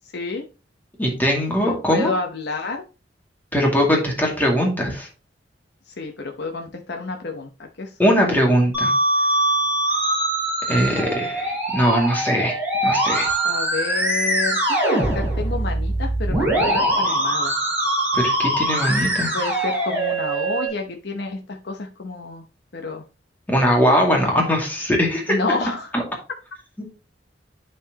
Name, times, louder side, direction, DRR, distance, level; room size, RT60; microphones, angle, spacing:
voice 1, 0.1-0.4 1.6-2.8 5.9-7.5 7.8-8.2 13.4-17.6 19.3-22.5 22.7-23.0 25.2-25.9, left 3 dB, 65° left, 3 dB, 0.9 m, -29 dB
voice 2, 1.0-2.1 3.5-5.1 8.0-8.9 10.7-12.6 12.8-13.3 18.1-19.3 23.5-25.3 25.9-26.0, equal, 10° left, -1 dB, 2.3 m, -20 dB
Musical instrument, 8.7-20.7, right 1 dB, 10° right, 3.8 m, -22 dB
10.0 x 4.5 x 2.9 m, 0.32 s
head